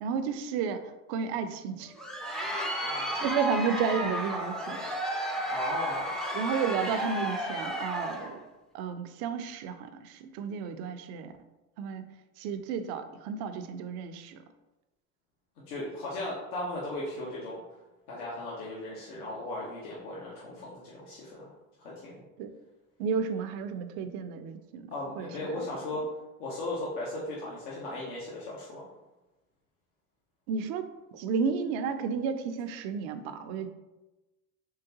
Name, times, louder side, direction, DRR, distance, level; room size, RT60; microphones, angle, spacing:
voice 1, 0.0-1.9 3.2-4.8 6.3-8.4 8.7-11.3 11.8-14.4 22.4-22.5 23.0-24.9 25.2-25.3 30.5-33.7, right 6 dB, 55° right, 9 dB, 0.5 m, -32 dB
Crowd, 1.8-8.4, equal, ahead, 0.4 m, -33 dB
voice 2, 2.8-3.3 5.5-6.1 15.7-17.6 18.1-21.5 21.8-22.2 24.9-26.0 26.4-28.8, left 1 dB, 75° left, -6 dB, 1.0 m, -36 dB
3.7 x 3.4 x 2.8 m, 1.1 s
hypercardioid pair, 75°, 44 cm